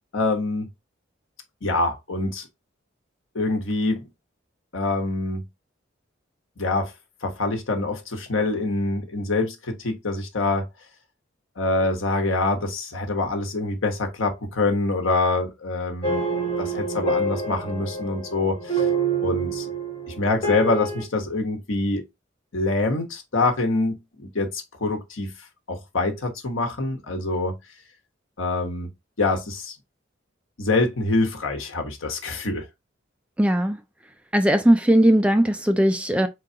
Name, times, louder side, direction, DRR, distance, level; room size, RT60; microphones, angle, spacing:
voice 1, 0.1-0.7 1.6-2.5 3.3-4.0 4.7-5.4 6.6-6.9 7.2-10.6 11.6-16.2 16.6-18.9 19.2-19.7 20.1-22.0 22.5-25.3 25.7-27.6 28.4-28.9 29.2-29.7 30.6-32.6, left 2 dB, 90° left, 1.1 m, -25 dB
sound 1, 16.0-21.0, right 3 dB, 25° left, 1.4 m, -27 dB
voice 2, 33.4-33.8 34.3-36.3, right 1 dB, 5° right, 0.3 m, -18 dB
4.7 x 3.8 x 2.8 m
head